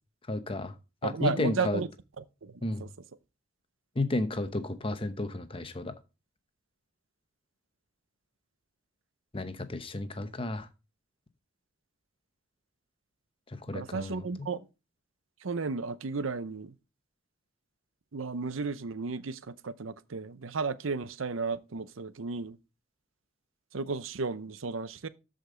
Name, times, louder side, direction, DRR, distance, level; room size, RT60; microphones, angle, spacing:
voice 1, 0.3-0.7 1.0-1.8 2.6-2.8 4.0-5.9 9.3-10.7 13.5-14.5, left 2 dB, 25° left, 0.8 m, -32 dB
voice 2, 1.0-1.9 2.2-2.9 13.7-14.7 15.4-16.7 18.1-22.6 23.7-25.1, right 4 dB, 80° right, 0.7 m, -34 dB
13.0 x 5.2 x 3.8 m
head